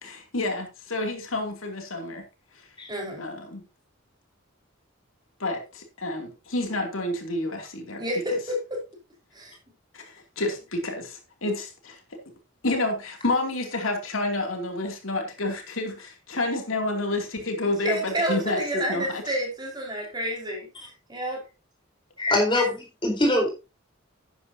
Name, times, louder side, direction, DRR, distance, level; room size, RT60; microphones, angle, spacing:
voice 1, 0.0-2.3 3.2-3.6 5.4-8.0 9.9-12.2 12.6-19.2, left 2 dB, 80° left, 2.9 m, -29 dB
voice 2, 2.9-3.2 8.0-8.8 9.3-9.6 17.8-21.4, equal, 20° right, 5.0 m, -29 dB
voice 3, 22.2-23.5, left 1 dB, 25° left, 4.2 m, -23 dB
12.0 x 10.0 x 2.8 m
head